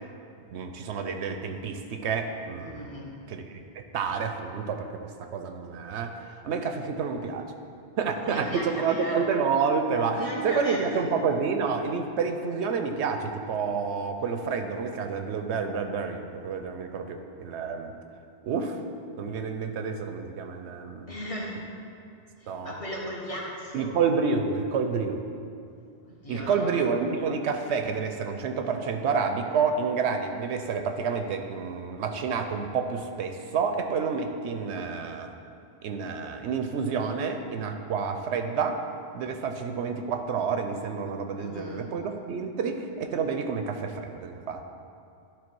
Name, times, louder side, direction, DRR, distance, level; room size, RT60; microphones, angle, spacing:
voice 1, 0.5-7.5 8.0-17.9 18.4-18.8 19.2-21.1 22.5-22.7 23.7-25.2 26.3-35.3 35.8-38.8 39.1-44.7, right 5 dB, 80° right, 6 dB, 0.9 m, -29 dB
voice 2, 2.6-3.1 8.2-9.2 10.2-11.0 21.1-21.6 22.4-24.0 26.1-26.7 41.4-41.9, equal, 30° left, -5 dB, 1.4 m, -37 dB
11.5 x 3.8 x 4.6 m, 2.5 s
omnidirectional pair, 1.2 m